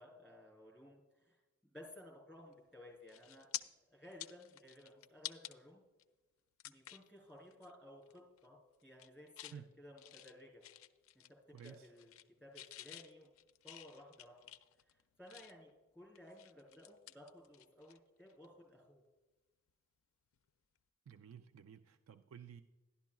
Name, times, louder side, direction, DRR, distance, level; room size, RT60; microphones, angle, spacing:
voice 1, 0.0-1.4 1.6-3.5 3.9-5.8 6.6-10.6 11.1-12.2 12.4-13.3 13.6-14.4 14.9-19.0, left 1 dB, 5° right, -1 dB, 3.5 m, -57 dB
sound 1, 2.5-2.7 3.1-3.6 4.0-5.5 6.0-6.1 6.6-7.1 7.5-7.7 8.0-8.5 8.8-9.6 10.0-11.3 11.6-12.3 12.5-15.7 16.1-18.0 18.3-18.5 20.3-20.5, left 13 dB, 80° left, 0.4 m, -50 dB
voice 2, 11.5-11.9 21.1-22.6, right 7 dB, 90° right, 10 dB, 0.4 m, -53 dB
11.5 x 11.5 x 2.3 m, 1.2 s
head